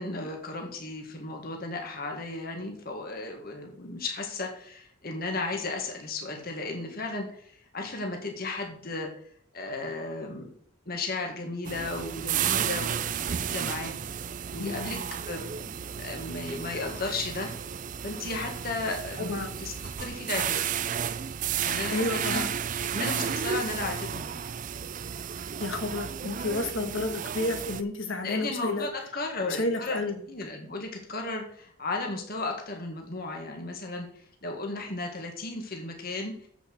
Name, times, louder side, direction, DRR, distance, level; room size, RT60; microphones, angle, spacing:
voice 1, 0.0-9.1 9.5-10.5 10.9-14.0 14.5-15.0 15.3-17.5 18.0-20.6 21.6-22.4 22.9-24.4 28.2-30.0 30.3-36.5, left 3 dB, 45° left, 2 dB, 1.7 m, -35 dB
sound 1, 11.6-27.8, right 8 dB, 35° right, 0.3 m, -33 dB
voice 2, 14.6-15.0 19.2-19.5 21.9-22.5 25.6-28.9 29.5-30.2, left 2 dB, 65° left, 6 dB, 1.7 m, -31 dB
8.0 x 7.0 x 6.3 m, 0.62 s
head